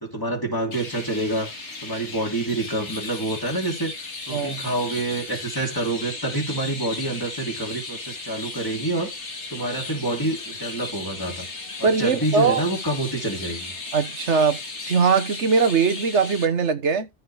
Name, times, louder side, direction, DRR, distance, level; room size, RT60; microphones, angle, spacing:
voice 1, 0.0-1.5 1.8-9.1 9.5-11.5 11.8-13.7, right 2 dB, 20° left, 2.9 m, -27 dB
Chirp tweet, 0.7-16.5, left 3 dB, 85° left, 2.4 m, -36 dB
voice 2, 11.8-12.6 13.9-14.6 14.9-17.1, right 5 dB, 85° right, 1.5 m, -21 dB
14.0 x 4.9 x 3.5 m
omnidirectional pair, 1.2 m